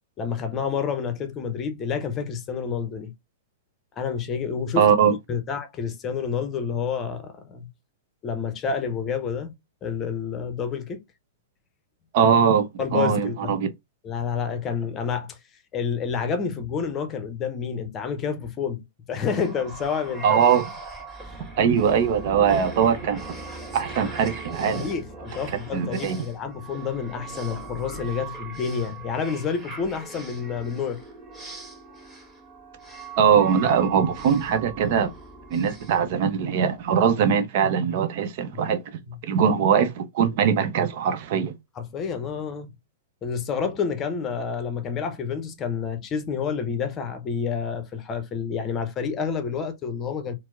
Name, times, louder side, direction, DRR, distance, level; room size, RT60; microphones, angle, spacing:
voice 1, 0.2-3.1 4.0-4.9 5.3-7.7 8.2-9.5 9.8-11.0 12.8-13.5 14.0-15.4 15.7-20.4 21.2-21.4 24.7-31.0 38.5-38.8 39.0-39.1 41.8-42.7 43.2-50.4, left 6 dB, 30° left, 0.7 m, -29 dB
voice 2, 4.8-5.2 12.1-13.7 20.2-20.6 21.6-23.2 23.7-24.9 25.7-26.2 33.2-35.1 35.5-41.5, right 7 dB, 50° right, 0.7 m, -21 dB
sound 1, 19.1-36.8, right 3 dB, 10° right, 2.0 m, -40 dB
4.4 x 2.1 x 2.4 m
figure-of-eight pair, 105°, 0 cm